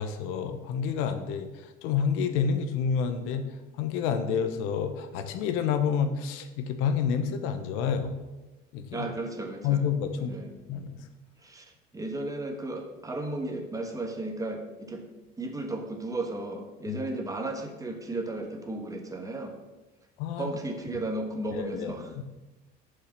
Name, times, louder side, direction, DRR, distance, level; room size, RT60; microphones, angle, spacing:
voice 1, 0.0-1.5 1.8-3.5 3.8-8.1 8.7-9.1 9.6-10.3 10.7-11.0 16.9-17.0 20.2-20.5 21.5-22.2, left 7 dB, 80° left, 8 dB, 0.9 m, -29 dB
voice 2, 8.9-9.8 10.2-10.5 11.4-15.0 15.4-19.5 20.4-22.1, right 2 dB, 15° right, 3 dB, 1.4 m, -34 dB
6.8 x 5.6 x 6.7 m, 1.1 s
supercardioid pair, 105°, 21 cm